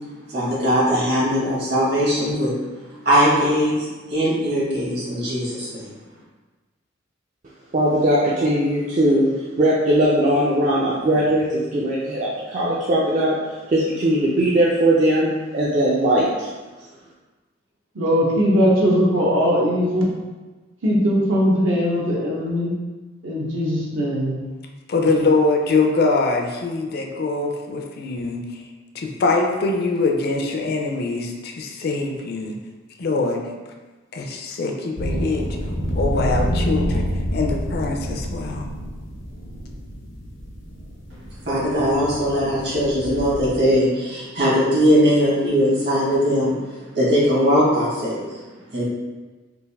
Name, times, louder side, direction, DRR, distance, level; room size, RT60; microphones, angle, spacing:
voice 1, 0.3-2.5 3.0-5.9 41.4-46.5 46.9-48.4 48.7-48.8, equal, 55° right, -6 dB, 1.3 m, -20 dB
voice 2, 7.7-9.3 9.6-13.4 13.7-16.5, right 1 dB, 40° right, -6 dB, 0.4 m, -19 dB
voice 3, 17.9-20.1 20.8-22.7 23.2-24.4, equal, 75° right, -4 dB, 0.9 m, -20 dB
voice 4, 24.9-28.6 28.9-32.6 33.0-33.4 34.1-35.6 36.0-38.7, left 3 dB, 50° left, 2 dB, 0.4 m, -23 dB
sound 1, 35.0-43.5, equal, 85° left, 0.7 m, -27 dB
3.3 x 2.5 x 3.3 m, 1.3 s
head